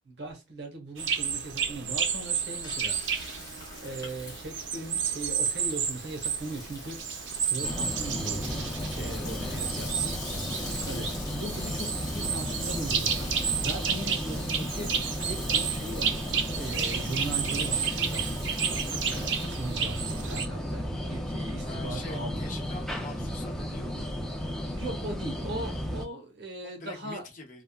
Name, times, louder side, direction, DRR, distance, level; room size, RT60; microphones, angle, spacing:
voice 1, 0.0-3.5 3.8-7.0 7.4-10.1 10.8-15.0 15.2-22.5 24.7-27.2, right 2 dB, 60° right, 0.9 m, -39 dB
sound 1, 1.0-20.5, right 7 dB, 80° right, 0.5 m, -32 dB
Frying (food), 2.2-19.4, left 2 dB, 20° left, 1.0 m, -44 dB
sound 2, 7.6-26.1, equal, 5° left, 0.4 m, -34 dB
voice 2, 9.3-9.9 21.6-24.2 26.6-27.6, left 2 dB, 45° left, 0.7 m, -44 dB
3.4 x 2.0 x 2.3 m
head